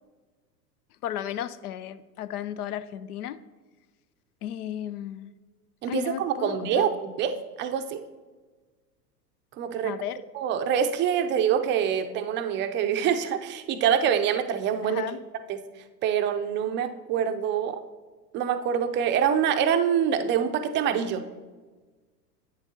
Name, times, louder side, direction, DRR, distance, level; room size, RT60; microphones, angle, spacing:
voice 1, 1.0-3.4 4.4-5.3 5.9-6.9 9.8-10.2 14.8-15.2, left 11 dB, 65° left, 15 dB, 0.6 m, -34 dB
voice 2, 5.8-8.0 9.6-9.9 10.3-15.0 15.5-15.6 16.0-17.8 18.3-21.2, right 8 dB, 25° right, 8 dB, 0.5 m, -25 dB
10.5 x 8.3 x 2.8 m, 1.3 s
hypercardioid pair, 105°, 50 cm